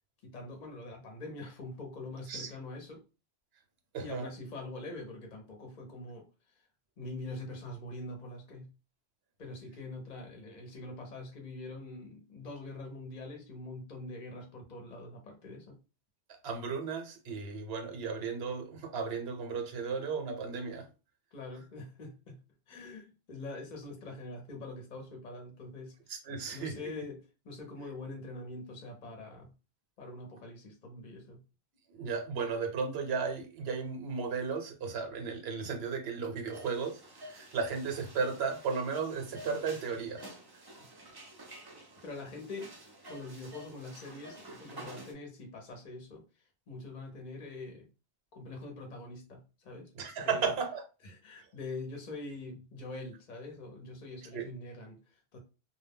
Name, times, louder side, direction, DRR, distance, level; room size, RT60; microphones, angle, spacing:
voice 1, 0.2-3.0 4.0-6.6 7.0-8.7 9.4-15.8 21.3-22.4 22.7-25.9 26.5-29.5 30.0-31.4 41.0-41.3 42.0-42.7 43.1-47.9 48.3-49.9 50.2-50.5 51.0-55.4, left 2 dB, 50° left, 0.7 m, -44 dB
voice 2, 3.9-4.2 16.4-20.8 26.1-26.9 31.9-40.3 49.9-50.8 51.4-51.5 54.3-54.5, right 5 dB, 70° right, 0.9 m, -35 dB
sound 1, 36.5-45.1, right 1 dB, 35° right, 0.4 m, -50 dB
2.1 x 2.1 x 3.4 m
omnidirectional pair, 1.1 m